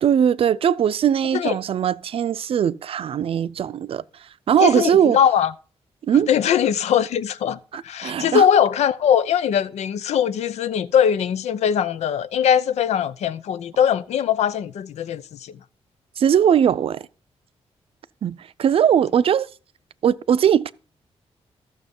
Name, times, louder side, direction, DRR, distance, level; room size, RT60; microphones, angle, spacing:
voice 1, 0.0-4.0 4.5-5.2 6.0-6.3 7.7-8.5 16.2-17.1 18.2-19.5 20.0-20.7, right 8 dB, 60° right, 0.5 m, -20 dB
voice 2, 4.6-5.5 6.3-15.5, left 9 dB, 90° left, 0.6 m, -21 dB
14.5 x 6.6 x 5.3 m
cardioid pair, 120°, 11 cm